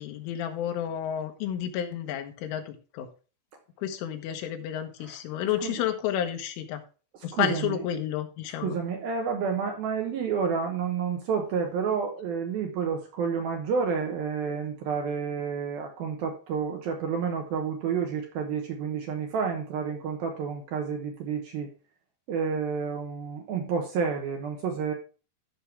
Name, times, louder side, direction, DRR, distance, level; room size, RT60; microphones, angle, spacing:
voice 1, 0.0-3.1 3.8-6.8 7.2-8.8, left 10 dB, 85° left, 6 dB, 3.7 m, -31 dB
voice 2, 5.0-5.8 7.3-7.9 8.6-21.7 22.3-24.9, right 6 dB, 70° right, 3 dB, 2.4 m, -30 dB
13.5 x 5.7 x 3.4 m, 0.35 s
omnidirectional pair, 5.5 m